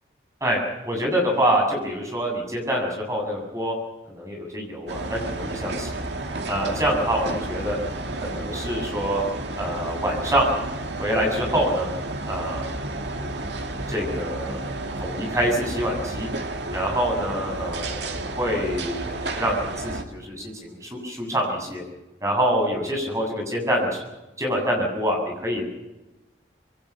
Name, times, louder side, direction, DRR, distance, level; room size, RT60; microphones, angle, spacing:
voice 1, 0.8-3.7 4.1-6.0 6.5-7.8 8.2-9.2 9.6-10.5 11.0-11.9 12.2-12.7 13.1-13.5 13.9-14.6 15.0-16.3 16.7-21.8 22.2-24.0 24.4-25.6, equal, 15° right, 1 dB, 7.5 m, -26 dB
sound 1, 4.9-20.0, right 2 dB, 75° right, 2.3 m, -31 dB
26.5 x 22.5 x 6.1 m, 1.0 s
head